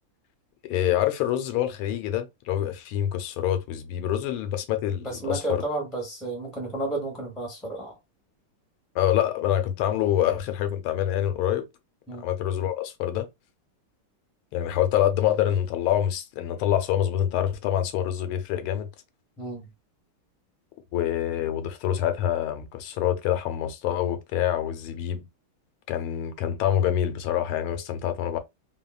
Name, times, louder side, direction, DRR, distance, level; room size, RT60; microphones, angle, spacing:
voice 1, 0.6-5.6 8.9-11.6 12.2-13.3 14.5-18.9 20.9-25.2 25.9-28.4, left 11 dB, 85° left, 1.5 m, -26 dB
voice 2, 5.0-7.9 12.1-12.3 19.4-19.7, right 2 dB, ahead, 0.4 m, -32 dB
3.5 x 2.1 x 2.4 m
omnidirectional pair, 2.3 m